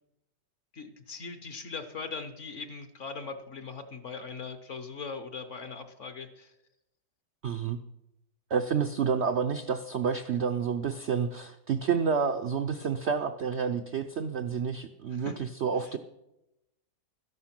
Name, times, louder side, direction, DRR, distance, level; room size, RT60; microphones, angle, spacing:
voice 1, 0.7-6.5 15.1-15.5 15.8-16.0, left 4 dB, 50° left, 10 dB, 1.1 m, -40 dB
voice 2, 7.4-7.8 8.5-16.0, right 6 dB, 65° right, 7 dB, 0.6 m, -29 dB
13.0 x 11.0 x 5.9 m, 0.87 s
omnidirectional pair, 1.9 m